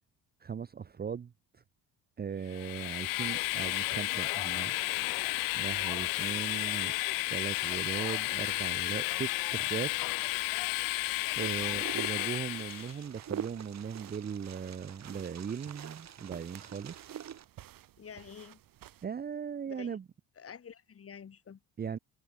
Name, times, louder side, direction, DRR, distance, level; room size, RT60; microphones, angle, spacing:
voice 1, 0.4-1.3 2.2-4.7 5.6-6.9 7.3-9.9 11.4-17.1 19.0-20.0 21.8-22.0, right 7 dB, 25° right, 0.8 m, -38 dB
Train, 2.5-13.0, left 21 dB, 65° left, 0.5 m, -32 dB
voice 2, 11.4-11.9 18.0-18.6 19.6-20.0 20.4-21.6, left 7 dB, 40° left, 5.0 m, -48 dB
Wind, 11.4-17.4, right 9 dB, 45° right, 3.8 m, -44 dB
sound 1, 11.7-19.0, right 13 dB, 65° right, 5.4 m, -55 dB
cardioid pair, 105°, 37 cm